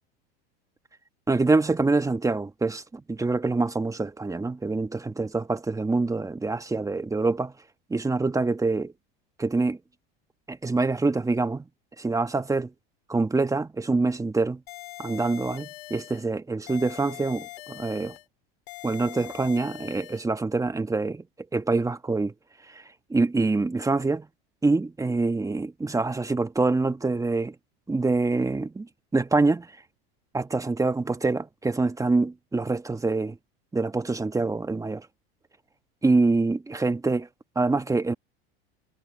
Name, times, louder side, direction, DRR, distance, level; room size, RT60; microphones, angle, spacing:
voice 1, 1.3-7.5 7.9-8.9 9.4-9.8 10.5-11.6 12.0-12.7 13.1-14.6 15.0-18.1 18.8-21.2 21.5-22.3 22.7-22.8 23.1-24.3 24.6-27.5 27.9-29.7 30.3-33.4 33.7-35.1 36.0-37.3 37.5-38.1, right 3 dB, 10° right, 1.3 m, -25 dB
sound 1, 14.7-16.3 16.7-18.3 18.7-20.3, left 20 dB, 80° left, 4.8 m, -42 dB
supercardioid pair, 115°, 31 cm